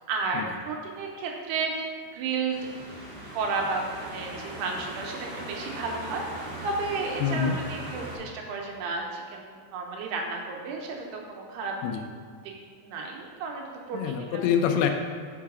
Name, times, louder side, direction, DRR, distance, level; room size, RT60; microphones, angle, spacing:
voice 1, 0.1-11.7 12.8-14.4, right 4 dB, 85° right, 0 dB, 2.9 m, -33 dB
sound 1, 2.5-8.2, right 1 dB, 45° right, 1.7 m, -39 dB
voice 2, 7.2-7.6 11.8-12.0 13.9-14.9, left 8 dB, 85° left, 5 dB, 2.5 m, -25 dB
5.5 x 4.7 x 4.8 m, 2.1 s
omnidirectional pair, 4.6 m